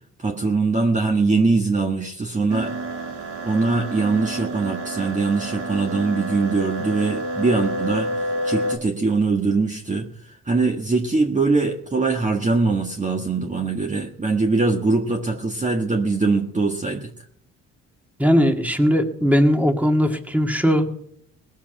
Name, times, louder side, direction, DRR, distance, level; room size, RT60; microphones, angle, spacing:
voice 1, 0.2-2.7 3.4-8.1 8.4-17.1, right 3 dB, 25° right, 2 dB, 1.5 m, -22 dB
sound 1, 2.5-8.8, right 1 dB, 80° right, 2.3 m, -29 dB
voice 2, 18.2-20.9, equal, 5° right, 4 dB, 2.1 m, -19 dB
19.5 x 7.4 x 6.0 m, 0.66 s
cardioid pair, 90°, 30 cm